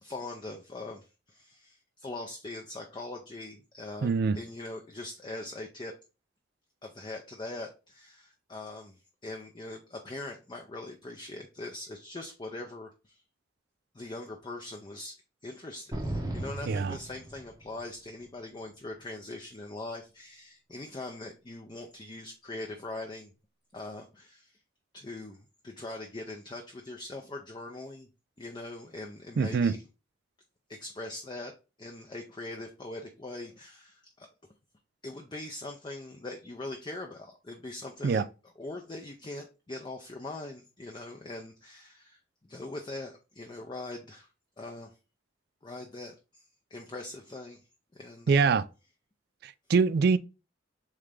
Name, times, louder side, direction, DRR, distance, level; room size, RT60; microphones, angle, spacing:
voice 1, 0.0-5.9 6.8-13.2 13.9-15.2 15.4-23.3 23.7-24.6 24.9-28.1 28.4-29.8 30.7-31.5 31.8-34.3 35.0-38.2 38.6-44.3 44.6-44.9 45.6-46.5 46.7-47.6 47.9-48.5, left 2 dB, 25° left, 0.5 m, -42 dB
voice 2, 4.0-4.4 16.7-17.0 29.4-29.7 38.0-38.3 48.3-48.6 49.4-50.2, right 5 dB, 55° right, 0.3 m, -24 dB
sound 1, 15.9-17.8, right 1 dB, 20° right, 0.7 m, -36 dB
3.8 x 3.3 x 3.4 m
head